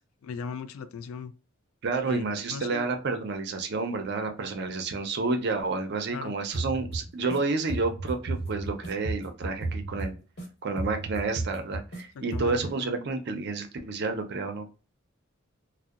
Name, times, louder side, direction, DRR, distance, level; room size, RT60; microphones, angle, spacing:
voice 1, 0.2-1.3 2.0-2.2 2.5-2.8 6.1-6.3 12.3-12.6, left 5 dB, 75° left, 0.3 m, -37 dB
voice 2, 1.8-10.1 10.6-14.7, right 3 dB, 55° right, 0.5 m, -30 dB
sound 1, 6.5-7.4 7.7-10.5 10.8-12.0 12.3-12.7, right 2 dB, 50° left, 1.1 m, -34 dB
2.7 x 2.0 x 2.3 m
head